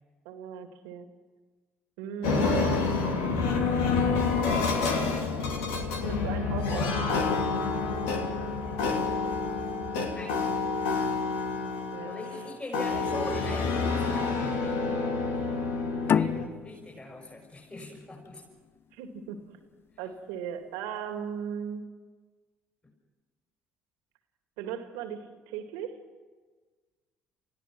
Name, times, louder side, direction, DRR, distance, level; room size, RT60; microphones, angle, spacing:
voice 1, 0.3-1.1 2.0-3.6 6.1-7.5 11.6-12.1 18.9-19.4 20.0-21.8 24.6-25.9, right 7 dB, 75° right, 6 dB, 2.3 m, -38 dB
sound 1, 2.2-16.5, left 4 dB, 75° left, 2.7 m, -28 dB
voice 2, 10.0-10.4 12.0-15.0 16.0-18.4, left 1 dB, 25° left, -3 dB, 6.7 m, -42 dB
sound 2, 16.1-19.3, left 8 dB, 45° left, 0.6 m, -30 dB
29.5 x 15.5 x 6.1 m, 1.4 s
hypercardioid pair, 55°, 5 cm